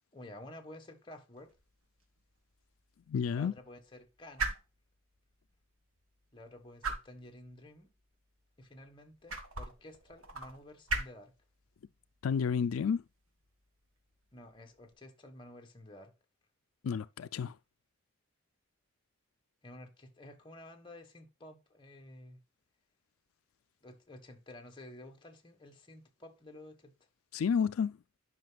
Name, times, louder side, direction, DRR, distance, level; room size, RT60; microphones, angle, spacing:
voice 1, 0.1-1.5 3.3-4.6 6.3-7.9 8.6-11.3 14.3-16.1 19.6-22.4 23.8-26.9, left 1 dB, 25° left, 1.5 m, -52 dB
sound 1, 1.4-14.9, right 3 dB, 85° right, 1.8 m, -44 dB
voice 2, 3.1-3.5 12.2-13.0 16.8-17.6 27.3-28.0, left 6 dB, 85° left, 0.4 m, -30 dB
10.5 x 5.8 x 2.3 m
head